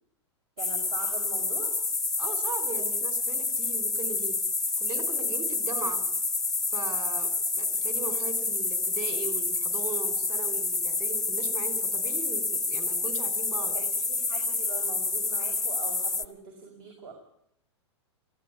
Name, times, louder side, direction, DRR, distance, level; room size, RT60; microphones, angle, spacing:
sound 1, 0.6-16.2, left 3 dB, 5° left, 1.1 m, -28 dB
voice 1, 0.6-1.7 13.7-17.1, right 5 dB, 55° right, 3 dB, 5.5 m, -42 dB
voice 2, 2.2-4.4 4.8-6.0 6.7-13.8, right 6 dB, 25° right, 9 dB, 4.8 m, -39 dB
20.0 x 15.0 x 8.6 m, 0.76 s
hypercardioid pair, 105°, 15 cm